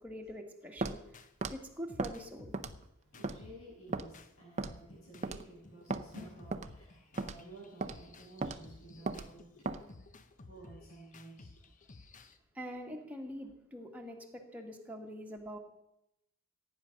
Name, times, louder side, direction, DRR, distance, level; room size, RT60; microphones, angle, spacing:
voice 1, 0.0-2.5 12.5-15.6, equal, 5° right, 1 dB, 1.7 m, -45 dB
Walk footsteps, 0.8-1.0 1.4-1.6 2.0-2.2 2.5-2.8 3.2-3.4 3.9-4.1 4.6-4.8 5.2-5.4 5.9-6.0 6.5-6.7 7.2-7.4 7.8-8.0 8.4-8.6 9.1-9.3 9.7-9.8, right 3 dB, 30° right, 0.6 m, -36 dB
sound 1, 1.1-1.3 1.9-4.3 4.6-12.4, left 3 dB, 35° left, 0.8 m, -55 dB
voice 2, 3.0-9.7 10.5-11.5, right 1 dB, 65° left, -6 dB, 6.4 m, -52 dB
15.5 x 9.3 x 6.5 m, 0.86 s
head